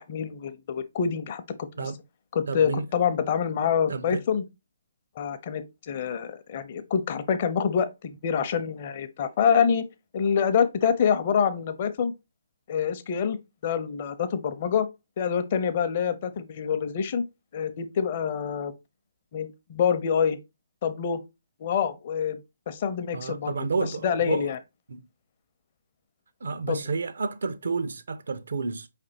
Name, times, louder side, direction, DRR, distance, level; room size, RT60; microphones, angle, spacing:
voice 1, 0.0-1.9 2.3-4.4 5.2-9.8 10.1-12.1 12.7-13.4 13.6-14.9 15.2-17.2 17.5-18.7 19.3-20.4 20.8-21.2 21.6-22.4 22.7-23.5 24.0-24.6 26.7-26.8, left 7 dB, 40° left, 0.6 m, -26 dB
voice 2, 2.5-2.8 3.9-4.2 23.1-24.5 24.9-25.0 26.4-28.9, right 4 dB, 60° right, 0.5 m, -30 dB
4.8 x 3.3 x 2.8 m
figure-of-eight pair, 135°, 0 cm